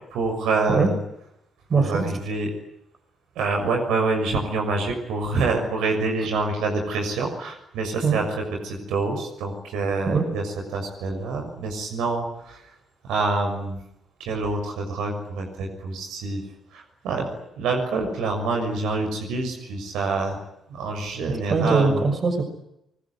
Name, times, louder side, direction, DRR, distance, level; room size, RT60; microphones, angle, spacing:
voice 1, 0.1-1.0 1.7-2.5 3.3-12.8 13.0-13.8 14.2-16.4 16.7-20.4 20.7-22.0, right 3 dB, 70° right, 3 dB, 6.5 m, -26 dB
voice 2, 1.7-2.0 8.0-8.2 10.1-10.2 21.5-22.4, right 4 dB, 50° right, 7 dB, 6.2 m, -21 dB
26.0 x 21.0 x 10.0 m, 0.81 s
hypercardioid pair, 45°, 0 cm